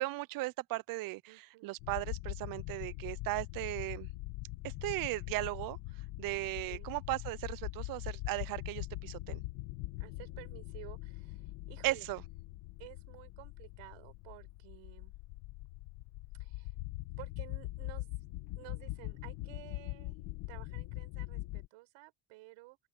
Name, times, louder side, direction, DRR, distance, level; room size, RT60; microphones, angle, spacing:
voice 1, 0.0-1.2 1.6-4.1 4.6-5.8 6.2-9.4 11.8-12.2, right 19 dB, 50° right, 0.4 m, -36 dB
voice 2, 1.3-1.8 6.7-6.9 10.0-12.1 12.8-15.1 16.4-16.7 17.2-18.1 18.5-20.2 20.5-22.9, right 21 dB, 85° right, 5.5 m, -53 dB
sound 1, 1.8-21.7, left 18 dB, 80° left, 2.1 m, -42 dB
open air
cardioid pair, 170°, 47 cm